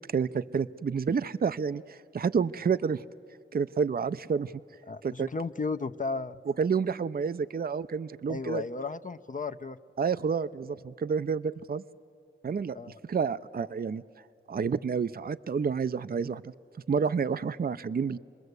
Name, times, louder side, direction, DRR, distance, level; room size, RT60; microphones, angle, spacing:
voice 1, 0.1-3.0 3.5-4.5 5.0-5.3 6.6-8.6 10.0-11.8 12.4-12.8 13.0-14.0 14.5-16.5 16.9-18.2, right 6 dB, 45° right, 14 dB, 0.5 m, -29 dB
voice 2, 4.9-6.4 8.3-9.8 12.7-13.0, left 4 dB, 40° left, 9 dB, 0.7 m, -34 dB
27.5 x 21.0 x 8.1 m, 2.4 s
cardioid pair, 45°, 21 cm